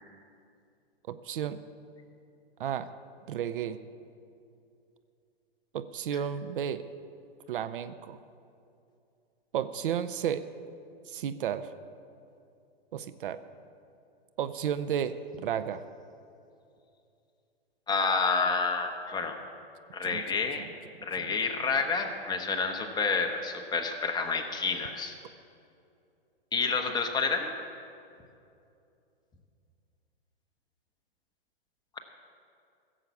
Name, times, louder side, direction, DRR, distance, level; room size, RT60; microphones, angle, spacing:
voice 1, 1.1-1.6 2.6-2.9 3.3-3.8 5.7-6.8 7.5-8.2 9.5-10.4 11.1-11.7 12.9-13.4 14.4-15.8 20.0-20.2 20.6-20.7 21.2-21.3, right 9 dB, 60° right, 12 dB, 0.6 m, -33 dB
voice 2, 17.9-19.4 19.9-20.7 21.0-25.2 26.5-27.5, left 4 dB, 15° left, 4 dB, 1.0 m, -29 dB
16.0 x 7.4 x 6.9 m, 2.6 s
hypercardioid pair, 120°, 31 cm